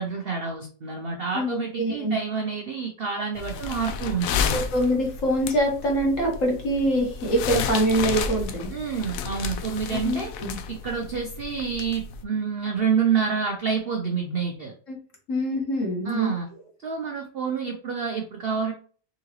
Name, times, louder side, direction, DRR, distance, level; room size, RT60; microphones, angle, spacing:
voice 1, 0.0-4.6 8.7-10.3 10.7-14.7 16.0-16.5 16.8-18.7, right 6 dB, 70° right, 2 dB, 0.5 m, -28 dB
voice 2, 1.3-2.2 4.5-8.7 9.9-10.6 14.9-15.0 15.3-16.3, equal, 50° left, 0 dB, 1.6 m, -24 dB
sound 1, 3.3-12.2, left 6 dB, 75° left, 0.8 m, -32 dB
3.9 x 3.7 x 3.1 m, 0.43 s
omnidirectional pair, 1.9 m